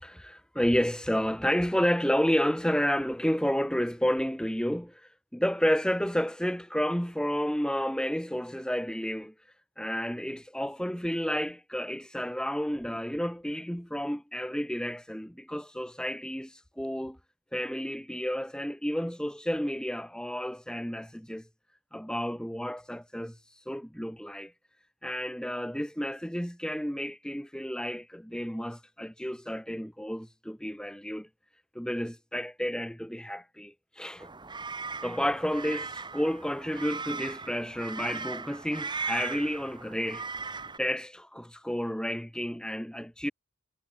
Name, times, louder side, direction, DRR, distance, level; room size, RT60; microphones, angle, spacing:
voice 1, 0.0-9.3 9.8-17.2 17.5-21.5 21.9-24.5 25.0-31.3 31.8-34.3 35.0-40.3 40.8-43.3, equal, 5° left, 2.1 m, -31 dB
sound 1, 34.2-40.8, right 4 dB, 20° right, 1.9 m, -38 dB
head